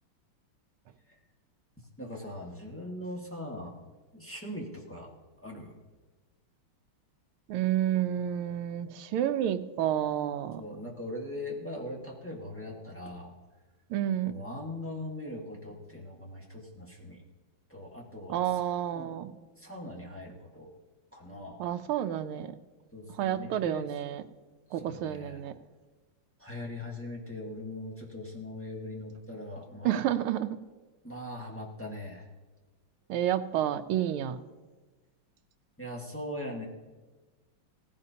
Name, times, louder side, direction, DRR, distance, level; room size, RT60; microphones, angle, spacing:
voice 1, 2.0-3.7 4.1-5.1 5.4-5.7 10.6-13.3 14.2-17.2 17.7-18.4 18.9-19.1 19.6-20.7 21.1-21.6 22.9-23.9 24.8-25.4 26.4-30.0 31.0-32.2 35.8-36.6, left 1 dB, 5° left, -2 dB, 1.2 m, -40 dB
voice 2, 7.5-10.6 13.9-14.3 18.3-19.3 21.6-22.6 23.2-24.2 24.7-25.5 29.8-30.6 33.1-34.4, right 11 dB, 80° right, 9 dB, 1.5 m, -30 dB
18.0 x 15.0 x 2.8 m, 1.3 s
omnidirectional pair, 2.4 m